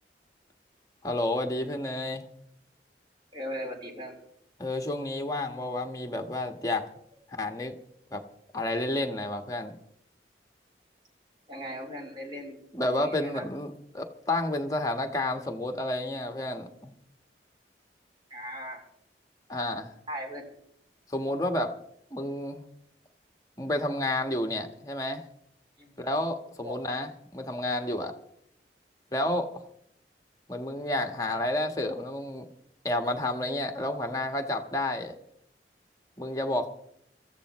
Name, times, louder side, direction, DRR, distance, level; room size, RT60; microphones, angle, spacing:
voice 1, 1.0-2.2 4.6-6.9 7.3-7.7 8.1-8.2 8.5-9.7 12.7-16.9 19.5-19.9 21.1-21.7 22.1-22.6 23.6-25.2 26.0-28.1 29.1-29.6 30.5-32.5 32.8-35.2 36.2-36.7, left 1 dB, 20° left, 4 dB, 1.3 m, -30 dB
voice 2, 3.3-4.2 11.5-12.6 13.0-13.4 18.3-18.8 20.1-20.4 25.8-25.9 26.6-26.8, equal, 25° right, 0 dB, 4.0 m, -38 dB
25.5 x 14.5 x 3.1 m, 0.71 s
head